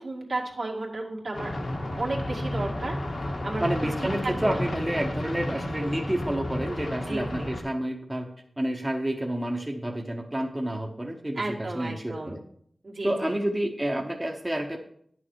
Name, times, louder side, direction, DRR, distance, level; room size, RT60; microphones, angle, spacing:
voice 1, 0.0-1.5 2.0-3.0 3.4-4.6 7.1-7.5 11.4-12.4 12.8-13.4, right 2 dB, 70° right, -2 dB, 2.1 m, -33 dB
sound 1, 1.3-7.6, left 1 dB, 75° left, 1.7 m, -32 dB
voice 2, 3.6-8.3 8.6-12.4 13.0-14.8, right 1 dB, 15° right, 1 dB, 1.0 m, -29 dB
10.0 x 6.4 x 4.7 m, 0.66 s
wide cardioid pair, 85°, 0 cm